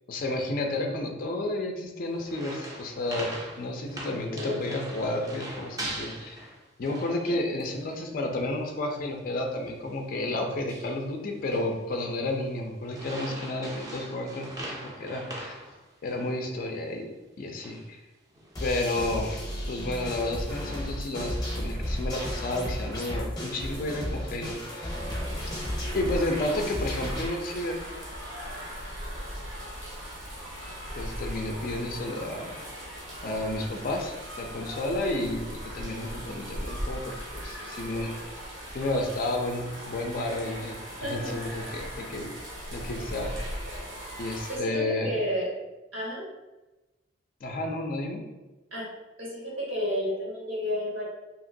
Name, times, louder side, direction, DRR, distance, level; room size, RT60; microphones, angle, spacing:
voice 1, 0.1-3.3 3.6-6.5 6.8-15.5 16.0-17.1 17.4-18.0 18.6-19.4 19.7-24.9 25.9-27.8 30.9-32.6 33.2-35.4 35.7-38.3 38.7-42.3 42.7-43.5 44.2-45.2 47.4-48.2, left 1 dB, 45° left, 3 dB, 0.4 m, -31 dB
sound 1, 2.1-7.3 7.6-8.0 8.3-8.5 9.0-9.2 9.6-9.9 10.5-11.0 11.3-11.8 12.2-12.5 12.9-16.4 16.7-16.8 17.4-17.9 18.3-18.8, right 1 dB, 20° right, 0.4 m, -41 dB
voice 2, 4.2-4.8 7.2-7.3 25.8-25.9 41.0-41.3 44.5-45.5 45.9-46.2 48.7-48.9 49.2-51.0, equal, 85° right, -5 dB, 1.2 m, -31 dB
sound 2, 18.5-27.3, equal, 20° left, 0.7 m, -33 dB
sound 3, 24.9-44.6, equal, 70° right, 0.9 m, -39 dB
2.8 x 2.8 x 2.6 m, 1.1 s
head